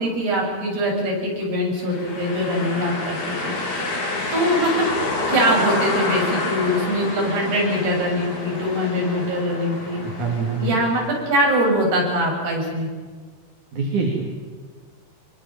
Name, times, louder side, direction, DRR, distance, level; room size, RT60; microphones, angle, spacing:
voice 1, 0.0-3.9 4.3-4.8 5.3-10.0 10.6-12.9, equal, 70° right, -1 dB, 9.6 m, -22 dB
sound 1, 1.8-11.6, left 2 dB, 45° left, 5.0 m, -28 dB
voice 2, 10.0-10.8 13.7-14.2, right 4 dB, 50° right, 1 dB, 4.3 m, -24 dB
26.0 x 24.0 x 7.5 m, 1.5 s
omnidirectional pair, 4.8 m